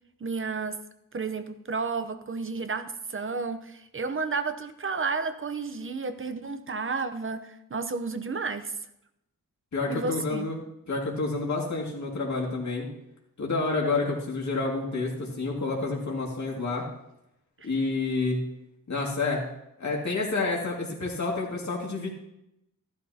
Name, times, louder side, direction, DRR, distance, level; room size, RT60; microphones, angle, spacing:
voice 1, 0.2-0.8 1.1-8.7 9.9-10.5, right 4 dB, 35° right, 10 dB, 0.8 m, -32 dB
voice 2, 9.7-12.9 13.4-16.8 17.6-18.4 18.9-19.4 19.8-22.1, left 3 dB, 55° left, -2 dB, 2.3 m, -29 dB
15.0 x 11.5 x 2.9 m, 0.84 s
wide cardioid pair, 130°, 35 cm